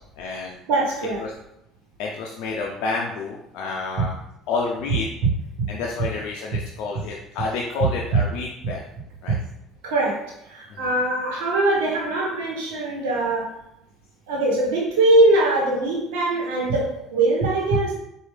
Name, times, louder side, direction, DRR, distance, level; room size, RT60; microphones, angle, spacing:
voice 1, 0.2-0.6 1.2-1.3 2.0-4.1 4.5-5.1 5.7-8.8 9.2-9.4 10.7-10.9, left 4 dB, 70° left, -2 dB, 0.5 m, -29 dB
voice 2, 0.7-1.2 4.0-4.1 5.6-5.7 9.3-9.4 9.8-13.5 14.3-17.9, right 2 dB, 80° right, -3 dB, 1.3 m, -22 dB
4.7 x 2.6 x 3.3 m, 0.83 s
hypercardioid pair, 70°, 0 cm